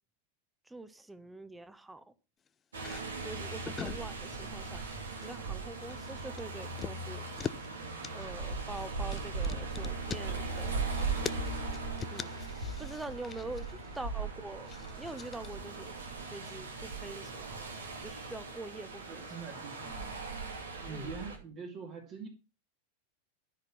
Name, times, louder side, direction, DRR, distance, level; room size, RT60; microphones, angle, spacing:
voice 1, 0.7-2.0 3.2-4.8 5.2-7.2 8.1-10.8 12.1-15.9 16.3-19.6 20.9-21.1, right 2 dB, 5° right, 13 dB, 1.0 m, -45 dB
sound 1, 2.7-3.0 3.5-4.1 4.3-4.7 5.0-5.4 5.7-7.7 8.0-14.0 14.6-15.5, left 7 dB, 25° left, 0.6 m, -43 dB
sound 2, 2.7-21.4, right 3 dB, 70° right, 2.5 m, -39 dB
voice 2, 19.1-20.2 20.8-22.3, right 5 dB, 35° right, 2 dB, 2.4 m, -44 dB
13.0 x 6.1 x 5.9 m, 0.32 s
figure-of-eight pair, 90°, 0 cm